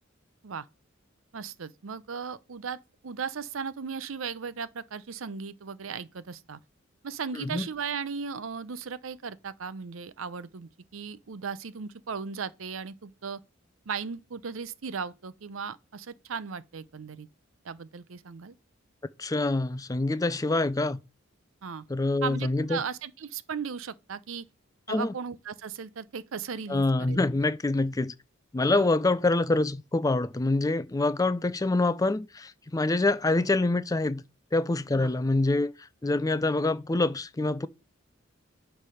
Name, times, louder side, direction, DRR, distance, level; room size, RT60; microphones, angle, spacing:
voice 1, 1.3-6.6 7.0-13.4 13.9-17.3 17.6-18.6 21.6-21.8 22.2-24.5 24.9-27.2 28.7-28.9 34.9-35.1, right 6 dB, 80° right, 0.6 m, -37 dB
voice 2, 19.2-21.0 21.9-22.8 24.9-25.1 26.7-28.1 28.5-34.2 34.5-35.7 36.0-37.7, left 2 dB, 20° left, 0.5 m, -26 dB
9.9 x 3.4 x 6.3 m
head